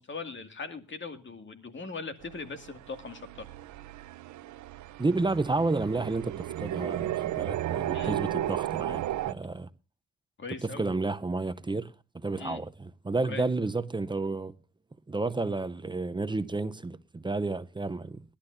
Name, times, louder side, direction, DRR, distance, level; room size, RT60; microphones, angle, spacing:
voice 1, 0.0-3.5 7.9-8.2 10.4-10.8 12.4-12.6 13.3-13.5, left 4 dB, 40° left, 2.2 m, -40 dB
sound 1, 2.2-9.3, right 13 dB, 75° right, 0.7 m, -34 dB
voice 2, 5.0-9.7 10.6-14.5 15.1-18.2, right 3 dB, 15° right, 0.7 m, -31 dB
21.0 x 11.5 x 2.6 m
cardioid pair, 90°, 30 cm